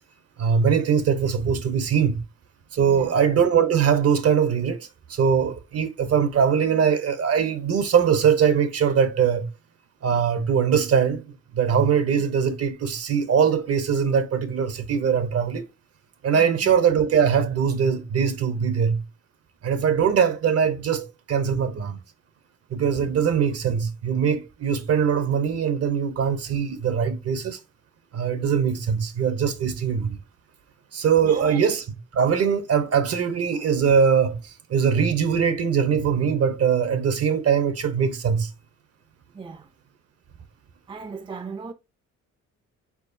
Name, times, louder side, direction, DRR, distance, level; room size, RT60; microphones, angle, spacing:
voice 1, 0.4-2.2 2.7-9.5 10.0-15.6 16.2-19.0 19.6-22.0 22.7-27.6 28.1-30.2 30.9-31.8 32.1-38.5, right 7 dB, 55° right, 0.8 m, -22 dB
voice 2, 2.8-3.2 16.3-16.6 23.1-23.2 31.2-31.7 39.3-39.7 40.9-41.7, right 5 dB, 15° right, 0.5 m, -38 dB
4.7 x 4.2 x 2.6 m
cardioid pair, 90°, 30 cm